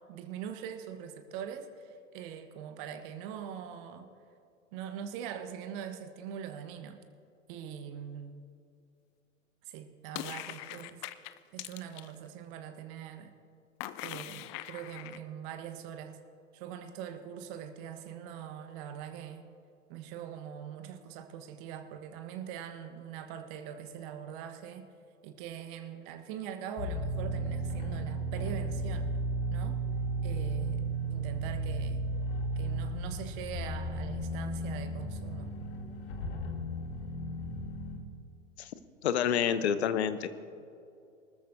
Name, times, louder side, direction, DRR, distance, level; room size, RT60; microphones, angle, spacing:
voice 1, 0.1-4.1 4.7-7.0 7.5-8.4 9.7-11.0 11.5-13.3 14.0-16.2 16.5-19.4 19.9-24.9 25.2-29.1 29.5-29.8 30.2-32.0 32.6-35.5, right 9 dB, 45° right, 7 dB, 1.2 m, -42 dB
sound 1, 10.1-12.1 13.8-15.2, left 15 dB, 25° left, 0.3 m, -41 dB
sound 2, 26.8-38.0, right 2 dB, 45° left, 1.9 m, -34 dB
voice 2, 39.0-40.3, left 8 dB, 60° left, 12 dB, 1.0 m, -28 dB
24.0 x 13.5 x 2.7 m, 2.5 s
figure-of-eight pair, 95°, 37 cm